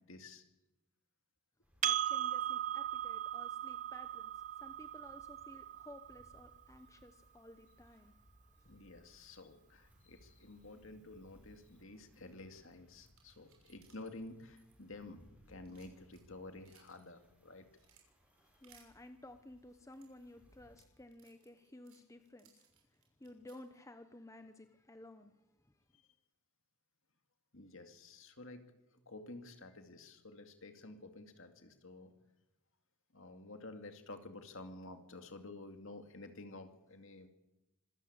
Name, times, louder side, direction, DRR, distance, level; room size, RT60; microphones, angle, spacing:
voice 1, 0.1-0.4 8.6-15.2 15.5-17.7 27.5-28.6 29.1-32.1 33.1-37.3, left 2 dB, 60° left, 6 dB, 2.5 m, -51 dB
sound 1, 1.6-20.8, equal, 5° right, 7.3 m, -68 dB
voice 2, 1.8-8.2 18.6-22.7 22.9-25.7, left 1 dB, 15° left, 8 dB, 0.9 m, -55 dB
Percussion, 1.8-6.6, right 11 dB, 35° right, 0.8 m, -38 dB
sound 2, 12.7-15.2 15.5-17.0 17.4-18.0 18.6-18.9 19.6-23.8, right 8 dB, 75° right, 6.5 m, -68 dB
25.5 x 15.0 x 8.9 m, 0.94 s
head